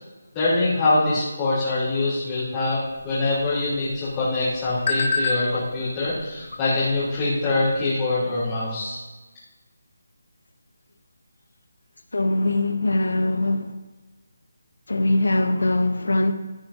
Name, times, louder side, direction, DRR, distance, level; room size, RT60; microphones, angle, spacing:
voice 1, 0.3-2.8 3.0-9.0, left 2 dB, 20° left, -12 dB, 3.5 m, -24 dB
sound 1, 2.8-7.9, left 3 dB, 40° left, 1.8 m, -32 dB
voice 2, 12.1-13.8 14.9-16.3, left 2 dB, 85° left, 10 dB, 1.0 m, -22 dB
15.0 x 9.0 x 2.9 m, 1.2 s
figure-of-eight pair, 165°, 0 cm